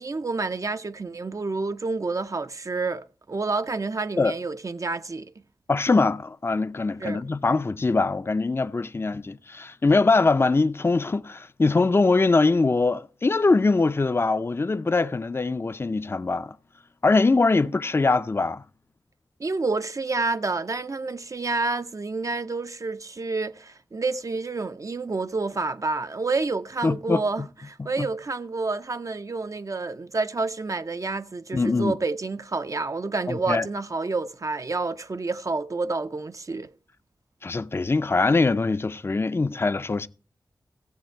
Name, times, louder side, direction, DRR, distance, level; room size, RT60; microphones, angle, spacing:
voice 1, 0.0-5.3 7.0-7.2 19.4-36.7, right 3 dB, 40° right, 0.4 m, -29 dB
voice 2, 5.7-16.6 17.0-18.6 26.8-27.5 27.8-28.1 31.5-32.0 33.3-33.7 37.4-40.1, left 3 dB, 30° left, 0.4 m, -22 dB
14.5 x 7.2 x 4.4 m
wide cardioid pair, 80°, 8 cm